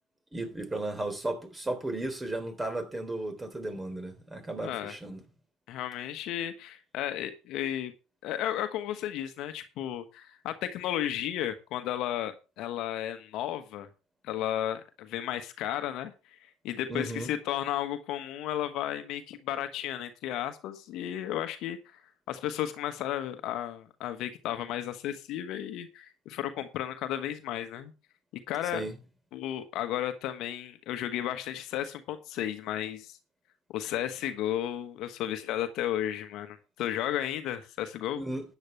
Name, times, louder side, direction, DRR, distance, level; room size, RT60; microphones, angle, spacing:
voice 1, 0.3-5.2 16.9-17.3 28.7-28.9 38.1-38.4, right 1 dB, 20° right, 3.5 m, -34 dB
voice 2, 4.6-4.9 5.7-7.9 8.2-13.9 14.2-16.1 16.6-22.0 22.3-27.9 28.5-28.8 29.3-33.2 33.7-38.2, left 11 dB, 65° left, 1.3 m, -33 dB
13.0 x 9.6 x 3.4 m
hypercardioid pair, 65°, 0 cm